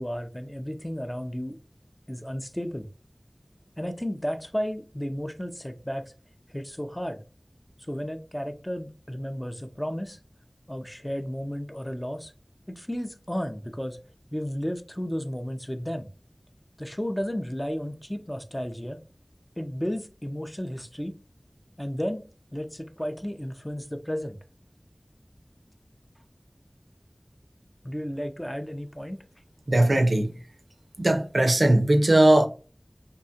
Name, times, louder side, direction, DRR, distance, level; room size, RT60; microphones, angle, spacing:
voice 1, 0.0-1.6 2.1-2.9 3.8-6.1 6.5-7.2 7.9-10.2 10.7-12.3 12.7-14.0 14.3-16.1 16.8-19.0 19.6-21.1 21.8-22.2 22.5-24.4 27.8-29.2, equal, 15° left, 0.4 m, -33 dB
voice 2, 29.7-30.3 31.0-32.5, right 1 dB, 80° right, 0.4 m, -19 dB
2.8 x 2.2 x 2.7 m
wide cardioid pair, 40°, 0 cm